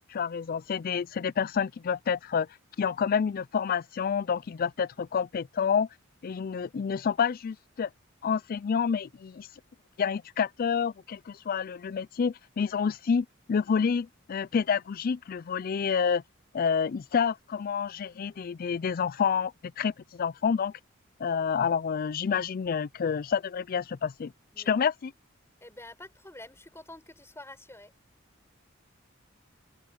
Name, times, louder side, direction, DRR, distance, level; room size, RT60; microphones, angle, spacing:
voice 1, 0.1-2.5 2.8-5.9 6.2-7.9 8.2-9.5 10.0-16.2 16.5-20.7 21.2-24.3 24.7-25.1, left 6 dB, 45° left, 0.4 m, -28 dB
voice 2, 24.5-24.9 25.6-27.9, left 2 dB, 15° left, 6.8 m, -48 dB
head